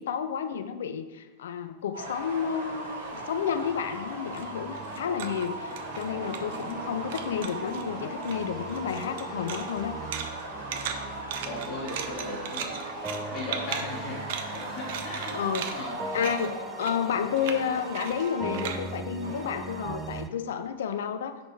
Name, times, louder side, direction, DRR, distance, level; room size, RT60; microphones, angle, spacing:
voice 1, 0.0-9.9 15.3-15.9 16.1-16.5 16.8-21.4, left 8 dB, 60° left, 10 dB, 0.5 m, -31 dB
sound 1, 1.9-20.1, right 1 dB, 70° right, 2.1 m, -38 dB
sound 2, 2.9-6.8 7.1-7.9 8.2-20.0, right 7 dB, 55° right, 0.6 m, -39 dB
sound 3, 3.5-20.3, right 3 dB, 10° right, 0.4 m, -42 dB
voice 2, 11.4-12.8 13.3-16.2, left 2 dB, 30° left, -5 dB, 2.2 m, -38 dB
6.4 x 5.1 x 4.6 m, 1.2 s
figure-of-eight pair, 90°, 0 cm